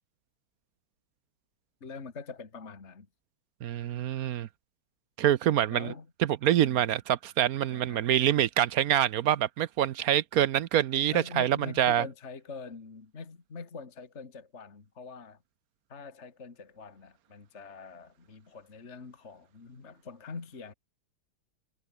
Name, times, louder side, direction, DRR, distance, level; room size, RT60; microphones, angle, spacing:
voice 1, 1.8-3.1 5.7-6.1 6.6-6.9 7.7-8.1 11.1-15.4 15.9-20.7, left 4 dB, 35° left, 2.3 m, -44 dB
voice 2, 3.6-4.5 5.2-5.9 6.4-12.0, right 11 dB, 65° right, 0.9 m, -26 dB
omnidirectional pair, 2.2 m